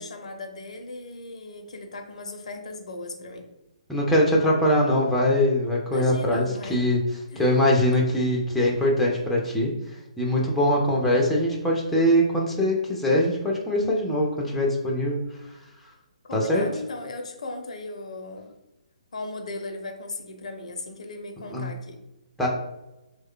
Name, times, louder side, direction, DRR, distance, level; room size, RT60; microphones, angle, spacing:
voice 1, 0.0-3.4 5.9-6.8 7.3-7.4 16.2-18.5 19.1-22.0, left 2 dB, 65° left, 5 dB, 0.6 m, -37 dB
voice 2, 3.9-7.0 7.4-9.7 10.2-15.2 16.3-16.6 21.5-21.7 22.4-22.5, left 1 dB, 5° left, -3 dB, 0.5 m, -22 dB
3.0 x 2.2 x 3.6 m, 0.95 s
figure-of-eight pair, 135°, 4 cm